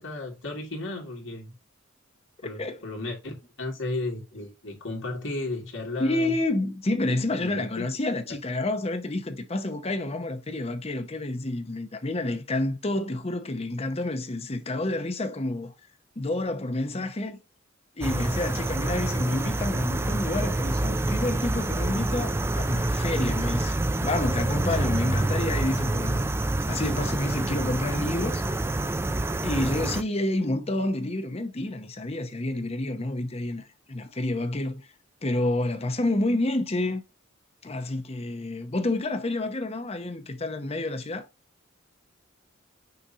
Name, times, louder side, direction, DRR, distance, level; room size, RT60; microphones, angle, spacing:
voice 1, 0.0-1.5 2.4-6.3 7.4-7.9, left 2 dB, 65° left, 2.2 m, -34 dB
voice 2, 6.0-15.7 16.2-17.4 18.0-26.3 26.7-28.4 29.4-34.8 35.2-37.0 37.6-41.3, left 2 dB, 30° left, 0.8 m, -29 dB
sound 1, 18.0-30.0, right 2 dB, 10° right, 0.3 m, -27 dB
6.5 x 2.7 x 5.4 m
head